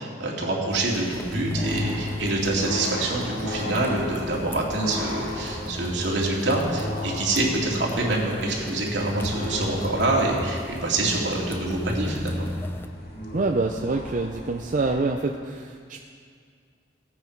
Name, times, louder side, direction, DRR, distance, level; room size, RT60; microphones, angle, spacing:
voice 1, 0.0-12.5, right 2 dB, 80° right, -3 dB, 2.4 m, -26 dB
sound 1, 0.7-12.9, left 1 dB, 15° left, 0.4 m, -37 dB
sound 2, 1.2-15.0, left 1 dB, 55° left, 2.8 m, -35 dB
voice 2, 13.3-16.0, right 3 dB, 45° right, 3 dB, 0.5 m, -26 dB
16.5 x 8.8 x 4.6 m, 2.1 s
head